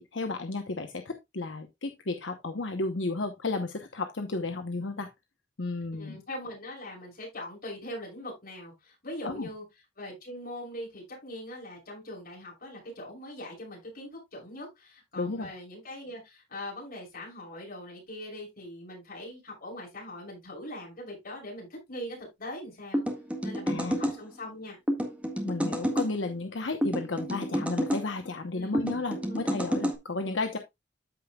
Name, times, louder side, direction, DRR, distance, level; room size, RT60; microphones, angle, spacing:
voice 1, 0.0-5.1 5.6-6.2 9.2-9.5 15.2-15.5 23.7-24.0 25.4-30.6, left 3 dB, 85° left, 1.0 m, -33 dB
voice 2, 5.9-9.6 10.0-23.0 23.4-24.8 28.5-28.8 29.1-29.4, left 1 dB, 55° left, 6.3 m, -41 dB
sound 1, 22.9-24.2 24.9-26.1 26.8-28.0 28.7-30.0, equal, 5° right, 1.7 m, -29 dB
14.0 x 5.3 x 2.3 m
head